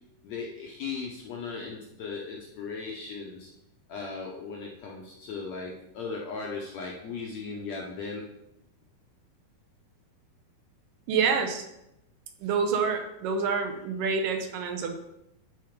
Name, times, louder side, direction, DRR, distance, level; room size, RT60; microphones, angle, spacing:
voice 1, 0.2-3.5 3.9-8.2, left 4 dB, 70° left, -1 dB, 1.7 m, -37 dB
voice 2, 11.1-11.7 12.4-15.0, right 5 dB, 75° right, 5 dB, 2.4 m, -27 dB
10.5 x 4.0 x 5.2 m, 0.84 s
omnidirectional pair, 4.1 m